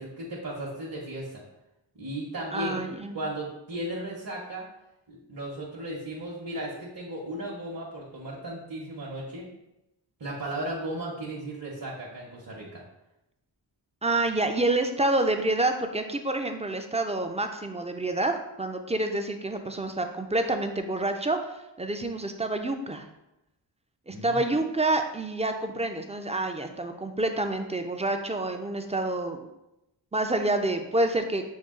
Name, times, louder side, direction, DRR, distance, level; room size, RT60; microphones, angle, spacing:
voice 1, 0.0-1.4 1.9-2.8 3.1-4.7 5.1-9.5 10.2-12.8 24.1-24.4, right 1 dB, 50° right, -4 dB, 0.8 m, -35 dB
voice 2, 2.5-3.2 14.0-21.4 21.8-23.1 24.1-29.5 30.1-31.4, right 2 dB, 15° right, 5 dB, 0.3 m, -28 dB
6.3 x 2.3 x 3.6 m, 0.92 s
wide cardioid pair, 75°, 46 cm